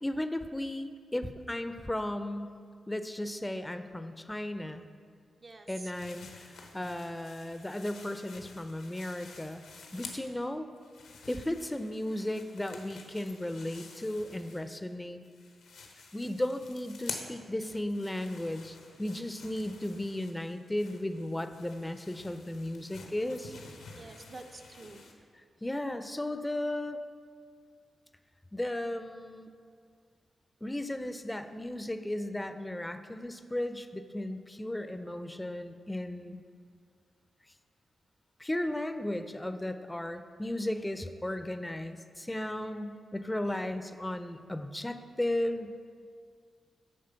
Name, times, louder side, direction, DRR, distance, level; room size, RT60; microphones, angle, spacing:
voice 1, 0.0-2.6 2.9-4.9 5.7-9.6 9.9-10.7 11.3-15.2 16.1-23.6 25.6-27.0 28.5-29.5 30.6-36.4 38.4-45.7, left 1 dB, 15° left, 9 dB, 0.4 m, -35 dB
voice 2, 5.4-5.9 6.8-6.9 24.0-25.0 42.6-42.8, right 3 dB, 50° right, 5 dB, 0.6 m, -48 dB
sound 1, 5.9-10.4 10.8-14.9 15.2-25.1, left 4 dB, 85° left, 0.7 m, -49 dB
8.8 x 3.2 x 5.6 m, 2.1 s
supercardioid pair, 40°, 0 cm